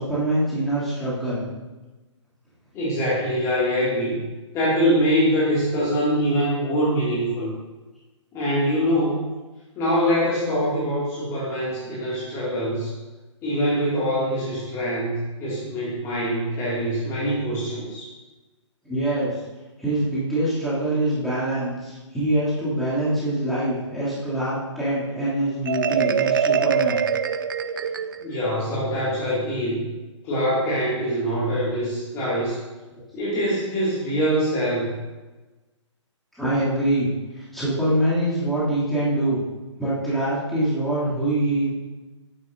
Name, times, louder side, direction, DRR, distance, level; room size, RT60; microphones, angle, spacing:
voice 1, 0.0-1.5 18.8-19.4 19.8-27.0 30.4-30.5 36.4-39.4 39.8-41.7, right 1 dB, ahead, -11 dB, 2.8 m, -24 dB
voice 2, 2.7-4.2 4.5-7.5 8.3-9.2 9.8-12.9 13.4-18.1 28.2-29.9 30.2-32.6 33.1-35.0, equal, 20° left, -8 dB, 2.4 m, -24 dB
Marimba xylophone, 25.7-28.4, right 7 dB, 45° right, 0.4 m, -23 dB
12.0 x 10.0 x 2.7 m, 1.2 s
figure-of-eight pair, 130°, 16 cm